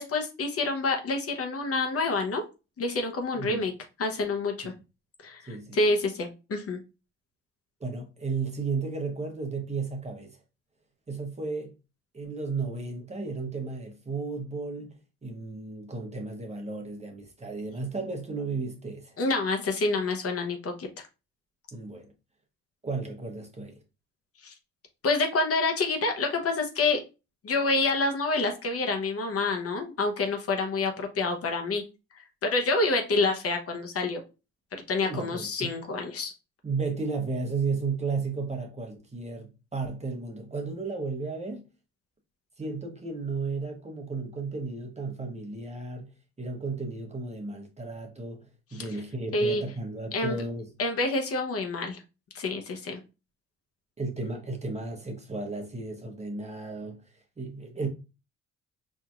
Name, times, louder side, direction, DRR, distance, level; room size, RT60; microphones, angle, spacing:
voice 1, 0.0-2.4 2.8-3.7 4.0-4.7 5.2-6.8 19.2-20.9 24.4-24.5 25.0-27.0 27.4-31.8 32.4-34.2 34.7-36.3 48.7-48.8 49.3-49.6 50.1-50.4 50.8-52.0 52.3-53.0, left 3 dB, 50° left, 0.8 m, -27 dB
voice 2, 5.5-5.8 7.8-10.4 11.1-11.7 12.1-19.2 21.7-22.1 22.8-23.8 35.0-35.7 36.6-41.6 42.6-46.1 46.4-50.7 54.0-57.0 57.4-57.9, right 4 dB, 20° right, 0.9 m, -34 dB
4.7 x 2.7 x 2.3 m
cardioid pair, 90°, 30 cm